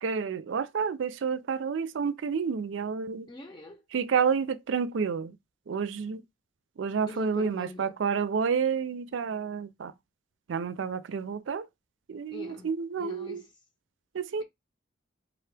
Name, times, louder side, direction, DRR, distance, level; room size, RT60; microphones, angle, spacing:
voice 1, 0.0-3.3 3.9-5.4 5.7-6.2 6.8-9.9 10.5-11.7 12.1-13.4 14.1-14.4, right 6 dB, 85° right, 0.4 m, -29 dB
voice 2, 3.3-3.8 7.1-8.0 12.3-12.7 13.0-13.5, left 1 dB, 25° left, 0.7 m, -43 dB
3.9 x 2.8 x 3.3 m
head